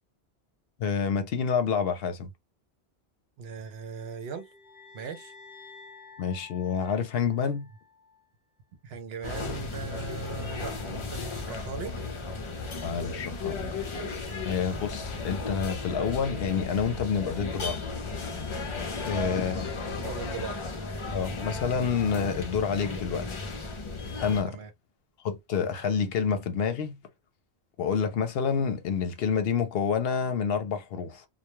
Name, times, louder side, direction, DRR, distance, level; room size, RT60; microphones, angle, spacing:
voice 1, 0.8-2.3 6.2-7.7 12.8-13.6 14.4-17.8 19.0-19.7 21.1-23.4 24.2-24.6 25.2-27.0 27.8-31.3, left 6 dB, 70° left, 0.8 m, -28 dB
voice 2, 3.4-4.5 4.9-5.3 8.8-12.0 19.4-19.6 20.0-20.6 24.4-24.7, right 5 dB, 70° right, 0.8 m, -39 dB
sound 1, 4.0-8.3, left 4 dB, 10° left, 1.0 m, -51 dB
sound 2, 9.2-24.4, left 3 dB, 40° left, 0.4 m, -35 dB
2.2 x 2.1 x 2.9 m
omnidirectional pair, 1.1 m